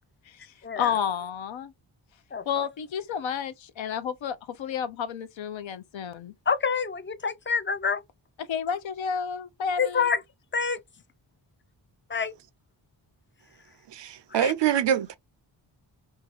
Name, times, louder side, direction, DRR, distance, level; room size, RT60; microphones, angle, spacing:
voice 1, 0.3-1.7 2.5-6.3 8.4-10.1, left 7 dB, 70° left, 0.6 m, -31 dB
voice 2, 2.3-2.7 6.5-8.0 9.8-10.2 10.5-10.8 12.1-12.3 14.3-14.5, left 5 dB, 25° left, 0.4 m, -27 dB
voice 3, 13.9-15.2, right 9 dB, 65° right, 0.5 m, -25 dB
2.8 x 2.3 x 2.8 m
cardioid pair, 60°, 48 cm